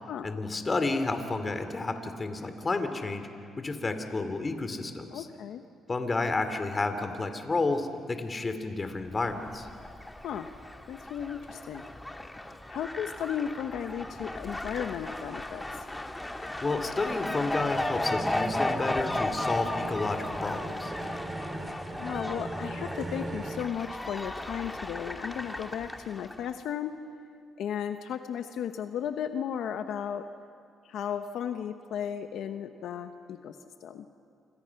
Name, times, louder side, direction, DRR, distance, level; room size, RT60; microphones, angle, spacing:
voice 1, 0.2-3.3 3.6-5.3 5.9-9.7 16.6-20.9, left 3 dB, 30° left, 8 dB, 2.6 m, -31 dB
voice 2, 5.1-5.6 10.2-10.5 10.9-11.8 12.7-15.6 22.0-26.9 27.6-30.3 30.8-33.6 33.8-34.0, left 8 dB, 75° left, 7 dB, 1.0 m, -35 dB
Fowl, 9.1-26.5, left 1 dB, 10° left, 1.7 m, -35 dB
sound 1, 15.2-23.6, right 1 dB, 20° right, 3.2 m, -40 dB
28.0 x 26.0 x 5.9 m, 2.5 s
cardioid pair, 90°, 0 cm